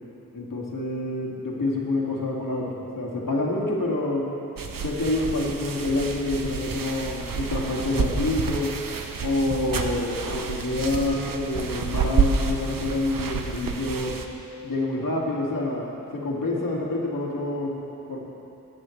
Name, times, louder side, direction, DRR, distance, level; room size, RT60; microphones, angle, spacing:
voice 1, 0.3-4.3 4.8-8.8 9.2-14.2 14.6-17.8 18.1-18.2, left 2 dB, 75° left, -3 dB, 2.1 m, -27 dB
sound 1, 4.6-14.3, right 5 dB, 85° right, 0.8 m, -29 dB
21.0 x 9.5 x 3.2 m, 2.8 s
wide cardioid pair, 105°, 33 cm